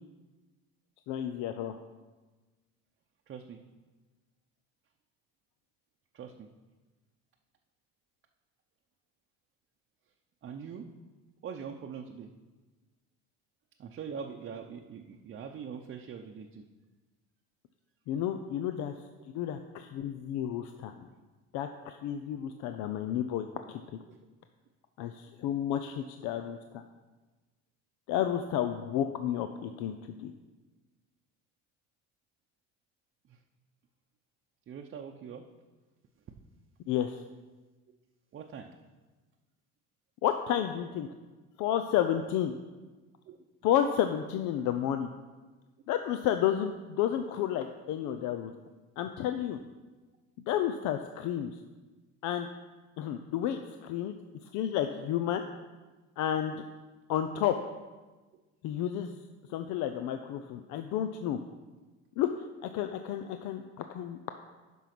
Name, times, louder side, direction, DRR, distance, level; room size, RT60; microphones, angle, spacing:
voice 1, 1.1-1.7 18.1-18.9 19.3-21.1 21.5-23.8 25.0-26.8 28.1-30.0 30.2-30.3 36.9-37.2 40.2-41.1 41.6-42.5 43.6-45.1 45.9-48.5 49.0-49.6 50.5-51.5 52.2-52.5 53.0-54.1 54.5-55.4 56.2-56.6 57.1-57.5 58.6-59.1 59.5-61.4 62.2-64.2, left 10 dB, 75° left, 7 dB, 0.6 m, -31 dB
voice 2, 3.3-3.6 6.1-6.5 10.4-10.9 11.4-12.3 13.8-16.7 24.1-24.2 33.3-33.4 34.7-35.5 38.3-38.7 43.3-43.4, right 6 dB, 40° right, 2 dB, 0.7 m, -43 dB
11.0 x 5.5 x 6.0 m, 1.3 s
cardioid pair, 115°, 29 cm